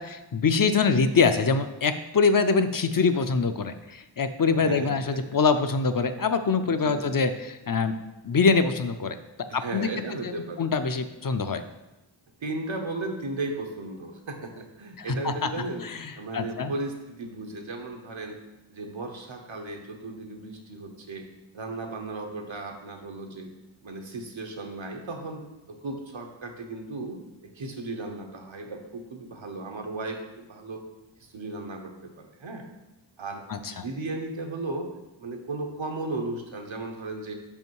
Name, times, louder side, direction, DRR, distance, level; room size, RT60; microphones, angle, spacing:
voice 1, 0.0-8.0 8.2-9.9 10.2-11.6 15.0-15.5 15.8-16.7 33.5-33.8, left 5 dB, 50° left, 9 dB, 0.5 m, -24 dB
voice 2, 4.5-5.2 6.7-7.0 9.5-10.7 12.4-15.8 16.1-18.4 18.7-30.8 31.2-32.7 33.2-33.4 33.7-34.9 35.2-37.3, right 2 dB, 85° right, 3 dB, 1.0 m, -36 dB
5.5 x 5.2 x 4.7 m, 1.0 s
wide cardioid pair, 50°, 45 cm